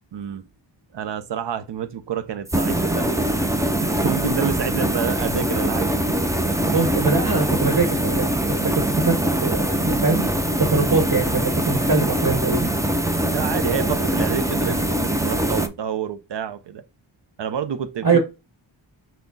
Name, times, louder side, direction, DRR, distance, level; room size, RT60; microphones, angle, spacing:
voice 1, 0.1-0.4 0.9-5.9 6.8-6.9 8.6-8.8 13.3-16.8 17.4-18.2, right 8 dB, 65° right, 0.7 m, -28 dB
sound 1, 2.5-15.7, right 1 dB, 5° right, 0.5 m, -23 dB
voice 2, 6.7-8.3 8.6-10.3 10.6-12.7 18.0-18.2, right 4 dB, 45° right, 1.2 m, -22 dB
5.9 x 2.3 x 3.9 m
wide cardioid pair, 85°, 46 cm